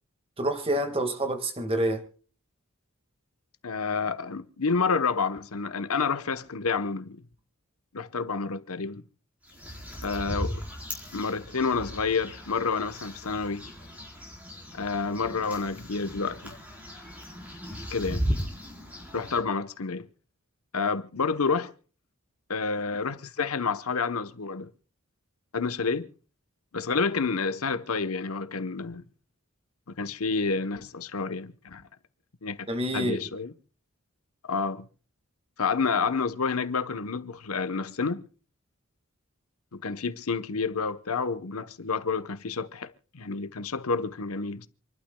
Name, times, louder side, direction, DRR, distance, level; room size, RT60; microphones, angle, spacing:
voice 1, 0.4-2.0 32.7-33.3, right 1 dB, 25° right, 1.8 m, -27 dB
voice 2, 3.6-7.2 7.9-9.0 10.0-10.6 11.1-13.6 14.8-16.5 17.9-18.2 19.1-20.1 20.7-21.7 22.5-24.7 25.5-26.1 26.7-29.0 29.9-31.8 32.4-32.7 32.9-33.5 34.4-34.9 35.6-38.3 39.7-44.7, left 4 dB, 85° left, 1.0 m, -29 dB
sound 1, 9.4-19.4, equal, 5° right, 4.1 m, -37 dB
28.0 x 12.0 x 2.3 m
head